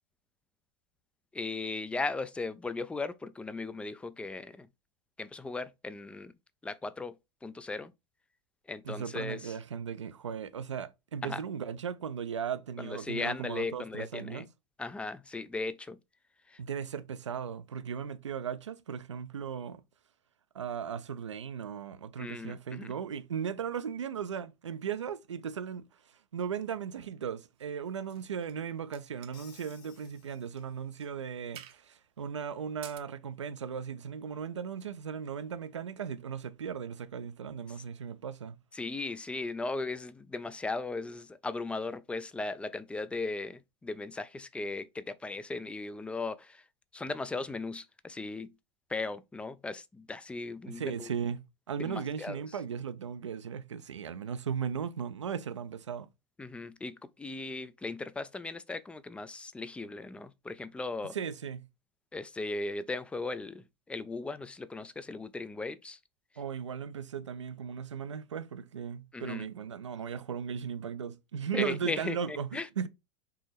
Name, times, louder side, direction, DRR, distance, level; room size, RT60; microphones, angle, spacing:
voice 1, 1.3-4.7 5.2-6.3 6.6-7.1 7.4-7.9 8.7-9.5 11.2-11.4 12.8-14.5 14.8-16.0 16.5-16.6 22.2-22.9 38.7-46.6 46.9-48.5 48.9-51.1 51.8-52.4 56.4-61.2 62.1-66.0 69.1-69.5 71.5-72.7, left 3 dB, 5° left, 0.3 m, -37 dB
voice 2, 8.8-14.5 16.6-19.8 20.5-25.8 26.3-38.6 50.7-51.4 51.7-56.1 61.1-61.7 66.4-72.9, right 7 dB, 80° right, 0.5 m, -37 dB
sound 1, 27.6-28.6 28.9-30.1 30.5-30.6 31.0-31.1 31.6-31.9 32.6-33.0, right 12 dB, 40° right, 0.6 m, -51 dB
Crash cymbal, 29.3-31.1, left 6 dB, 55° left, 1.4 m, -59 dB
4.5 x 3.0 x 3.3 m
figure-of-eight pair, 90°, 15 cm